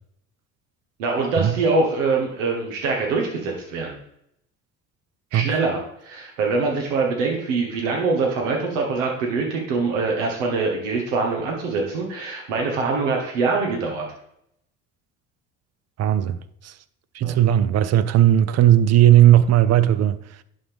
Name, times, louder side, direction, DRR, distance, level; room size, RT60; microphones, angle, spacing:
voice 1, 1.0-4.0 5.3-14.0 17.2-17.3, right 4 dB, 85° right, 1.4 m, -24 dB
voice 2, 16.0-16.8 17.1-20.4, right 12 dB, 45° right, 0.6 m, -17 dB
11.0 x 3.9 x 3.5 m
hypercardioid pair, 75°, 37 cm